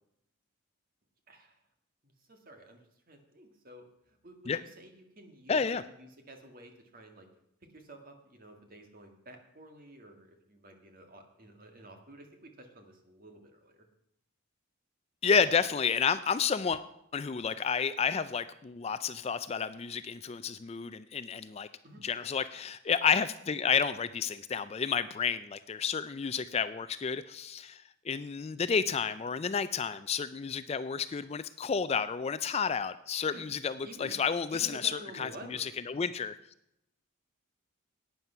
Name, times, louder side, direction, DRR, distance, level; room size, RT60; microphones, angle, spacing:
voice 1, 1.3-1.6 2.0-2.8 3.1-7.3 7.6-13.9 21.8-22.0 33.3-33.5 33.8-34.2 34.5-35.7, right 1 dB, 40° right, 4 dB, 1.8 m, -51 dB
voice 2, 5.5-5.8 15.2-16.8 17.1-21.7 22.0-34.9 35.2-35.3 35.6-36.4, left 6 dB, 30° left, 13 dB, 0.3 m, -30 dB
11.5 x 9.3 x 5.6 m, 0.79 s
head